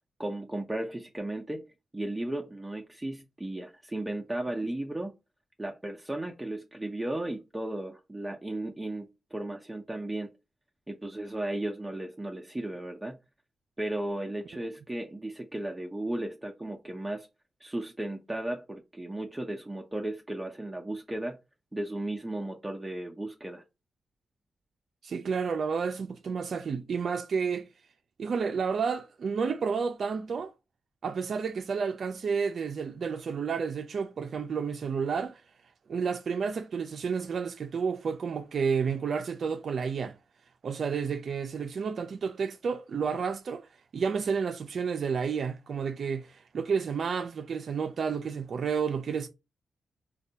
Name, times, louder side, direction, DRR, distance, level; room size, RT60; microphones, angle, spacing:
voice 1, 0.2-1.6 1.9-5.1 5.6-10.3 10.9-13.2 13.8-17.3 17.6-21.4 21.7-23.6, right 1 dB, 15° right, 0.5 m, -35 dB
voice 2, 25.0-27.7 28.2-30.5 31.0-35.4 35.9-40.1 40.6-43.7 43.9-49.3, right 6 dB, 65° right, 0.3 m, -31 dB
4.0 x 2.2 x 2.7 m
cardioid pair, 70°, 0 cm